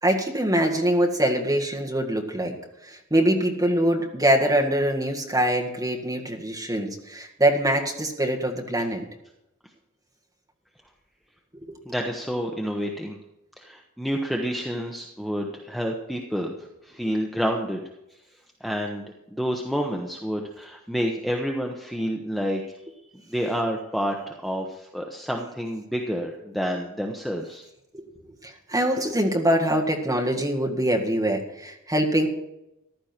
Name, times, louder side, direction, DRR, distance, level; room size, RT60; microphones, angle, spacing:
voice 1, 0.0-2.6 2.8-9.0 11.7-11.8 27.9-28.0 28.4-32.3, right 1 dB, 15° right, 1 dB, 1.8 m, -23 dB
voice 2, 11.8-13.2 13.6-16.5 16.8-17.8 18.6-19.1 19.3-22.8 23.1-27.6, equal, ahead, 1 dB, 1.0 m, -29 dB
15.0 x 11.5 x 4.5 m, 0.88 s
head